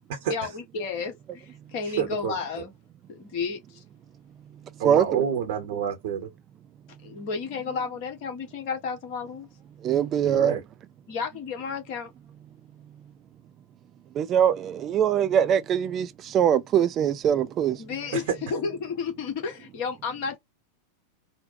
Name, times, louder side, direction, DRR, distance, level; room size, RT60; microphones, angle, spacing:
voice 1, 0.3-2.7 3.1-3.6 7.0-9.5 11.1-12.1 17.8-18.2 18.5-20.4, left 5 dB, 45° left, 1.3 m, -32 dB
voice 2, 1.8-2.3 4.8-6.3 10.2-10.6 18.1-18.2, right 8 dB, 55° right, 0.9 m, -29 dB
voice 3, 4.8-5.2 9.8-10.6 14.2-17.8, right 9 dB, 30° right, 0.4 m, -22 dB
3.9 x 2.1 x 2.6 m
figure-of-eight pair, 90°, 0 cm